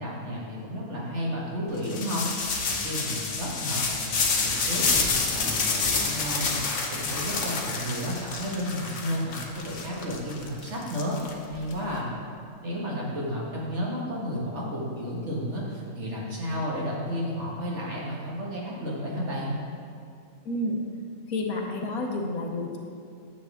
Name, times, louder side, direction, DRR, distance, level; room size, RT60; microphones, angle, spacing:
voice 1, 0.0-4.9 5.3-11.2 11.5-12.1 12.6-19.5, equal, 55° right, -4 dB, 1.9 m, -32 dB
sound 1, 1.8-11.7, left 4 dB, 70° left, 1.4 m, -28 dB
voice 2, 20.4-20.8 21.3-22.8, left 2 dB, 85° left, 1 dB, 1.5 m, -30 dB
9.7 x 7.6 x 3.6 m, 2.5 s
omnidirectional pair, 1.5 m